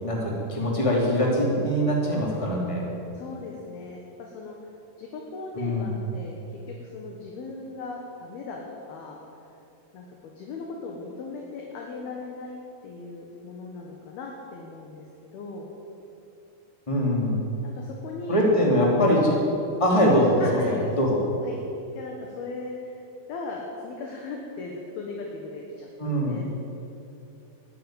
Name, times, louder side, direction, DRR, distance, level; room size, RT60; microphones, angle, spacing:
voice 1, 0.0-2.9 5.5-5.9 16.9-17.4 18.3-19.4 19.8-21.2 26.0-26.4, equal, 10° left, -2 dB, 1.7 m, -22 dB
voice 2, 3.1-6.4 6.7-9.2 9.9-12.6 12.8-15.7 17.6-18.4 19.0-19.1 20.4-21.0 21.4-21.6 22.0-23.0 23.3-26.4, left 3 dB, 65° left, 0 dB, 2.9 m, -38 dB
13.5 x 11.5 x 9.1 m, 2.7 s
omnidirectional pair, 5.6 m